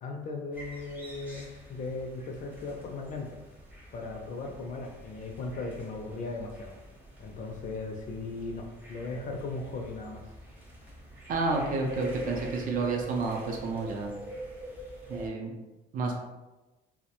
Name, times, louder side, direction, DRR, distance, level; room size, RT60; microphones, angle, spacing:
voice 1, 0.0-3.3 3.9-6.7 7.2-10.2, left 3 dB, 50° left, 2 dB, 0.4 m, -37 dB
sound 1, 0.5-15.3, right 1 dB, 10° right, 0.6 m, -45 dB
voice 2, 11.3-14.1 15.1-15.5 15.9-16.2, right 3 dB, 55° right, 1 dB, 0.5 m, -30 dB
2.2 x 2.1 x 2.8 m, 1.1 s
cardioid pair, 110°, 17 cm